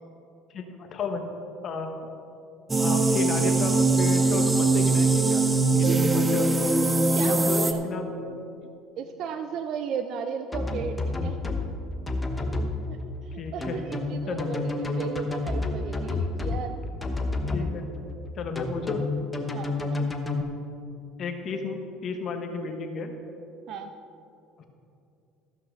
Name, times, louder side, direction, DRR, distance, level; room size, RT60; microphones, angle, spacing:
voice 1, 0.5-1.3 1.6-1.9 2.8-6.8 7.2-8.1 13.4-13.8 14.3-14.5 17.5-17.9 18.3-19.0 21.2-23.1 24.6-24.7, left 4 dB, 45° left, 5 dB, 1.2 m, -33 dB
sound 1, 2.7-7.7, right 3 dB, 15° right, 0.7 m, -22 dB
voice 2, 7.1-7.8 9.0-11.4 13.2-16.8 19.5-20.1 23.7-23.9, right 7 dB, 55° right, 8 dB, 0.5 m, -35 dB
sound 2, 10.5-11.6 12.1-12.7 13.6-16.6 17.0-17.7 18.6-20.4, left 3 dB, 15° left, 1.0 m, -29 dB
14.0 x 5.8 x 6.3 m, 2.7 s
supercardioid pair, 110°, 0 cm